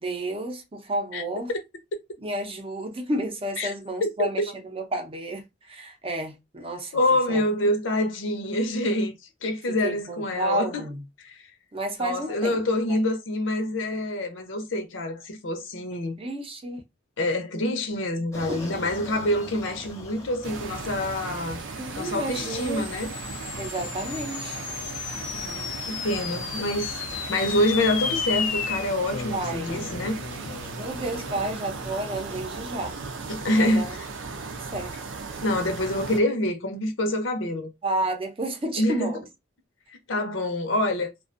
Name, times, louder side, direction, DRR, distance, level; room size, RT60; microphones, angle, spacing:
voice 1, 0.0-1.5 2.2-6.9 7.3-7.5 9.7-11.0 11.7-12.6 16.2-16.8 18.5-18.6 21.8-22.9 23.6-24.6 29.3-29.8 30.8-33.0 33.4-34.0 34.5-34.9 37.8-39.2, right 1 dB, 30° right, 0.6 m, -31 dB
voice 2, 4.0-4.5 6.9-9.1 9.4-10.8 11.2-11.5 12.0-16.2 17.2-21.6 22.0-23.1 25.3-30.2 33.3-34.0 35.4-37.7 38.8-39.2 39.9-41.1, left 1 dB, 85° left, 0.7 m, -26 dB
sound 1, 18.3-21.4, left 1 dB, 15° left, 0.7 m, -42 dB
sound 2, 20.4-36.2, right 4 dB, 80° right, 0.5 m, -37 dB
sound 3, 21.7-32.3, left 7 dB, 45° left, 0.3 m, -35 dB
2.5 x 2.2 x 2.5 m
head